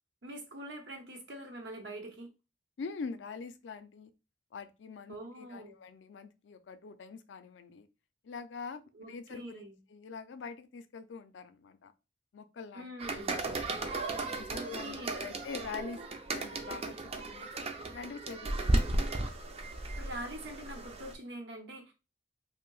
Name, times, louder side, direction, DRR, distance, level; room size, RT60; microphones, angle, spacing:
voice 1, 0.2-2.3 5.1-5.8 8.9-9.8 12.7-13.4 14.5-15.3 19.9-21.9, right 1 dB, 75° right, 0.8 m, -44 dB
voice 2, 2.8-4.1 4.5-7.9 8.2-8.8 9.1-9.6 9.9-11.9 12.3-12.9 13.3-14.0 14.3-16.0 16.3-17.0 17.3-17.5 17.9-19.3, left 5 dB, 80° left, 0.4 m, -44 dB
sound 1, 13.0-21.1, right 2 dB, 35° right, 0.4 m, -35 dB
2.7 x 2.1 x 3.8 m
head